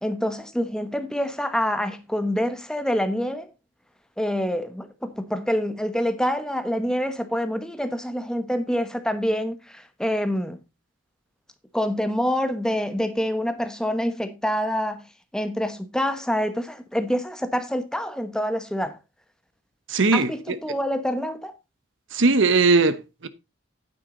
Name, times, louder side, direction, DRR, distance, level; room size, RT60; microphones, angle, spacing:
voice 1, 0.0-3.5 4.2-10.6 11.7-19.0 20.1-21.5, equal, 5° left, 1.1 m, -26 dB
voice 2, 19.9-20.6 22.1-23.3, right 3 dB, 70° right, 0.9 m, -20 dB
9.5 x 8.3 x 3.9 m
head